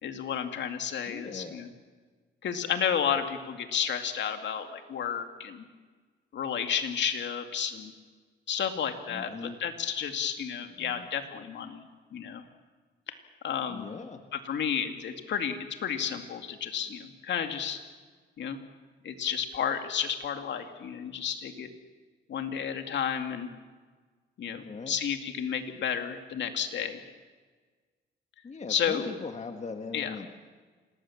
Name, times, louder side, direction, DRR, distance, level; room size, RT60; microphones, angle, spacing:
voice 1, 0.0-1.7 2.4-5.6 6.3-7.9 8.5-11.8 12.1-12.4 13.1-13.2 13.4-13.9 14.3-17.8 18.4-18.6 19.0-21.7 22.3-23.5 24.4-27.0 28.7-29.1 29.9-30.2, left 8 dB, 65° left, 6 dB, 2.5 m, -32 dB
voice 2, 1.1-1.6 9.1-9.6 10.8-11.1 13.7-14.2 24.6-25.0 28.4-30.3, left 4 dB, 35° left, 5 dB, 1.9 m, -40 dB
27.0 x 19.0 x 7.4 m, 1.4 s
cardioid pair, 90°, 20 cm